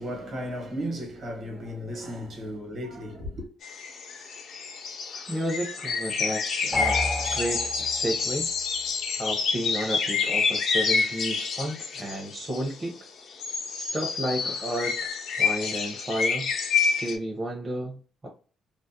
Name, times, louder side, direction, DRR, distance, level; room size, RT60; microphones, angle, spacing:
voice 1, 0.0-3.5, equal, 55° right, 1.1 m, -35 dB
sound 1, 3.6-12.8 13.3-17.2, left 5 dB, 70° left, 0.5 m, -28 dB
voice 2, 5.3-7.0 7.3-8.5 9.2-13.0 13.8-15.1 15.4-16.5 16.8-18.3, right 1 dB, 30° right, 0.7 m, -32 dB
sound 2, 6.7-8.2, left 1 dB, 10° left, 0.4 m, -31 dB
2.4 x 2.0 x 2.7 m
cardioid pair, 90°, 0 cm